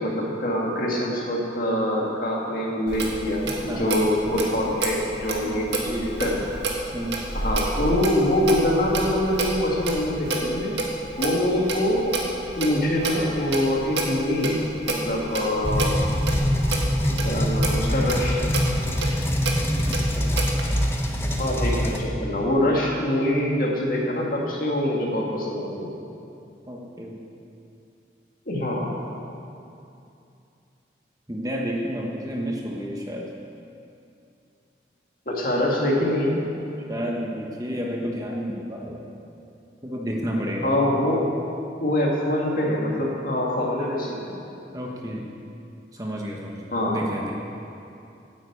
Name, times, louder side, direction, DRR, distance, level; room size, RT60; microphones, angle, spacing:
voice 1, 0.0-5.8 6.2-6.4 7.3-10.7 11.2-12.1 12.6-15.9 17.2-18.4 21.4-25.9 28.5-28.9 35.3-36.4 40.6-41.2 41.8-44.4 46.7-47.0, left 1 dB, 50° left, -2 dB, 2.2 m, -24 dB
Clock, 2.9-20.6, right 2 dB, 80° right, 1.7 m, -30 dB
voice 2, 3.7-4.0 5.4-6.2 6.9-7.3 19.8-20.3 26.7-27.2 31.3-33.3 36.8-39.0 39.8-40.7 44.7-45.3 45.9-47.3, equal, 20° right, -1 dB, 1.1 m, -31 dB
sound 1, 15.6-22.0, equal, 15° left, 0.9 m, -24 dB
9.6 x 9.4 x 8.2 m, 2.7 s
head